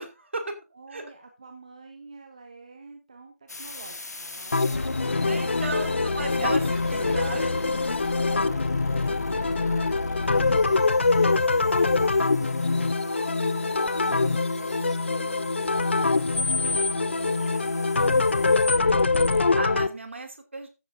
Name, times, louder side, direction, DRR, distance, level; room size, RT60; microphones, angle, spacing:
voice 1, 0.0-0.6 0.9-1.0 5.1-7.5 14.0-14.3 17.5-17.7 19.5-20.7, right 3 dB, 45° right, 5 dB, 2.7 m, -35 dB
voice 2, 0.7-5.0 5.6-5.8 8.3-17.6 17.8-19.4, right 4 dB, 25° right, 5 dB, 1.0 m, -48 dB
sound 1, 3.5-19.4, left 3 dB, 85° left, 1.5 m, -35 dB
sound 2, 4.5-19.9, left 3 dB, 45° left, 0.6 m, -24 dB
14.5 x 9.8 x 2.6 m, 0.28 s
figure-of-eight pair, 180°, 9 cm